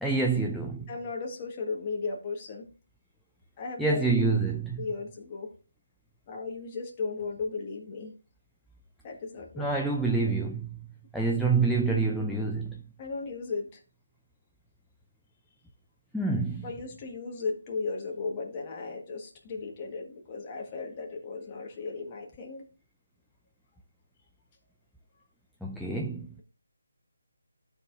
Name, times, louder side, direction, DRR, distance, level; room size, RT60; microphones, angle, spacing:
voice 1, 0.0-0.9 3.8-4.9 9.6-10.8 11.1-12.8 16.1-16.7 25.6-26.3, right 3 dB, ahead, 0.4 m, -27 dB
voice 2, 0.9-2.7 3.6-4.0 4.8-5.5 6.3-8.1 9.0-9.7 13.0-13.8 16.6-22.7, left 4 dB, 20° left, 1.4 m, -36 dB
14.0 x 4.7 x 2.5 m
figure-of-eight pair, 165°, 0 cm